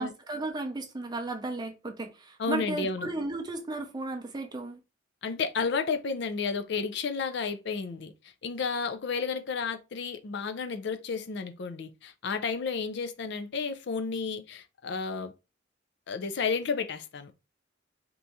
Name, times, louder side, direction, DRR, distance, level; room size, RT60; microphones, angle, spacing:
voice 1, 0.0-4.8, right 2 dB, 20° right, 0.5 m, -34 dB
voice 2, 2.4-3.1 5.2-8.1 8.4-15.3 16.1-17.3, left 5 dB, 60° left, 0.4 m, -32 dB
3.0 x 2.6 x 3.4 m
head